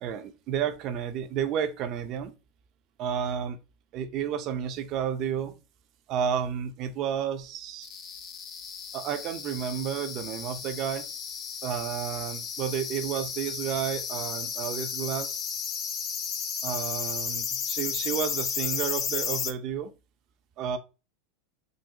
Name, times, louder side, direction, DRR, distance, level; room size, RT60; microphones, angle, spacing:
voice 1, 0.0-2.3 3.0-3.6 3.9-5.5 6.1-7.9 8.9-11.1 11.6-15.4 16.6-19.9 20.6-20.8, right 8 dB, 45° right, 0.5 m, -31 dB
sound 1, 7.8-19.5, left 7 dB, 40° left, 0.5 m, -34 dB
3.8 x 2.0 x 2.7 m
hypercardioid pair, 110°, 0 cm